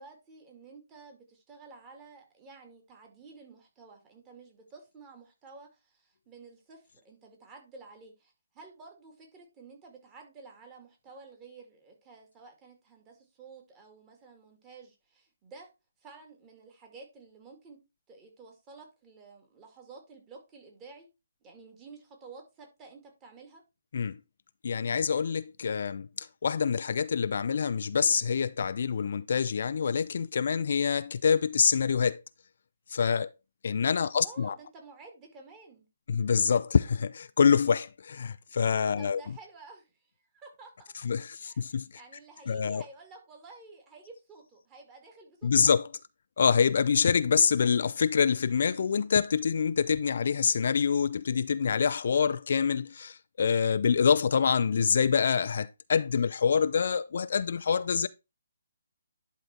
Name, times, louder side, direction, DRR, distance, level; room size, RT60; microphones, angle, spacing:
voice 1, 0.0-15.7 16.0-17.8 18.1-21.1 21.4-23.6 34.1-35.9 39.0-40.7 41.4-45.7, right 4 dB, 20° right, 2.4 m, -51 dB
voice 2, 24.6-32.2 32.9-33.3 33.6-34.6 36.1-39.2 41.0-41.9 42.5-42.8 45.4-45.9 46.4-58.1, left 6 dB, 55° left, 0.4 m, -26 dB
11.0 x 3.8 x 4.5 m
figure-of-eight pair, 135°, 0 cm